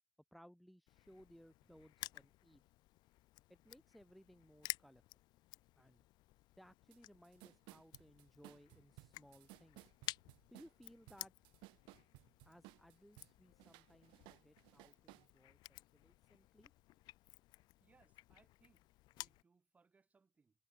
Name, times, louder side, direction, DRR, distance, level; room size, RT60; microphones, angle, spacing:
voice 1, 0.3-2.6 3.5-5.0 5.7-6.0 6.6-9.9 10.5-11.3 12.4-16.7, equal, ahead, 3.4 m, -63 dB
Crushing, 0.9-19.4, left 18 dB, 50° left, 0.8 m, -54 dB
sound 1, 6.9-7.0 7.2-13.3 13.6-15.3, right 24 dB, 60° right, 1.7 m, -60 dB
voice 2, 17.8-18.8 19.1-20.5, right 4 dB, 15° right, 7.2 m, -73 dB
cardioid pair, 150°, 9 cm